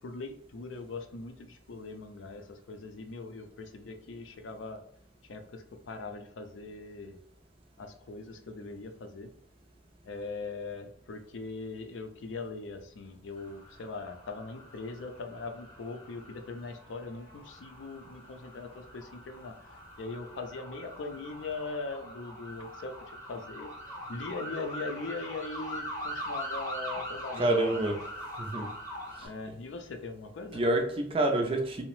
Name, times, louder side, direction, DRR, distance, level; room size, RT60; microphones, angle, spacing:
voice 1, 0.0-4.8 5.2-7.2 7.8-9.3 10.0-23.7 24.1-27.8 29.2-30.6, left 3 dB, 75° left, 6 dB, 0.4 m, -41 dB
sound 1, 13.4-29.3, equal, 15° left, 0.7 m, -42 dB
voice 2, 27.3-28.0 28.4-28.7 29.2-29.3 30.5-31.8, right 2 dB, 30° right, 4 dB, 0.4 m, -27 dB
2.7 x 2.0 x 3.0 m, 0.72 s
head